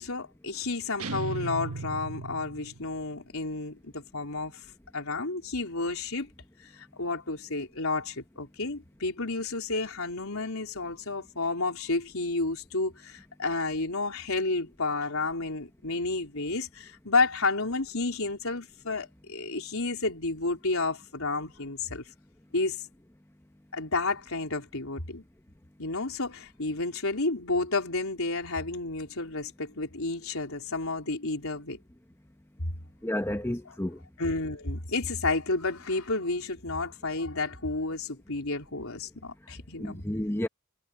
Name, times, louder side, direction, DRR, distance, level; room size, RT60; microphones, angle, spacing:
voice 1, 0.0-4.6 4.9-6.3 6.6-22.0 22.5-22.8 23.7-25.2 25.8-31.8 34.2-40.0, left 3 dB, 75° left, 4.1 m, -31 dB
sound 1, 1.0-3.0, right 3 dB, 90° right, 1.3 m, -37 dB
voice 2, 33.0-34.0 39.8-40.5, left 1 dB, 10° left, 0.9 m, -31 dB
head